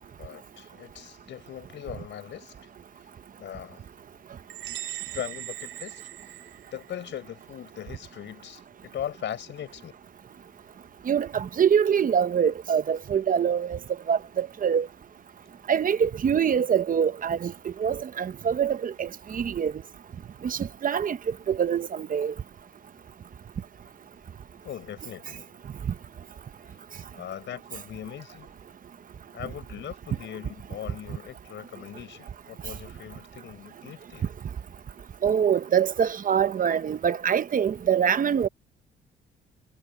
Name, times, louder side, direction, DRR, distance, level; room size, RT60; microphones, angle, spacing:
voice 1, 0.2-2.5 3.4-3.8 5.1-9.9 24.6-25.5 26.7-26.8 27.1-28.6 29.3-34.3, left 10 dB, 65° left, 4.7 m, -40 dB
sound 1, 4.5-7.1, right 15 dB, 80° right, 4.4 m, -39 dB
voice 2, 11.1-13.8 14.1-14.9 15.7-19.7 20.4-22.3 35.2-38.5, right 8 dB, 45° right, 0.9 m, -24 dB
cardioid pair, 90°, 20 cm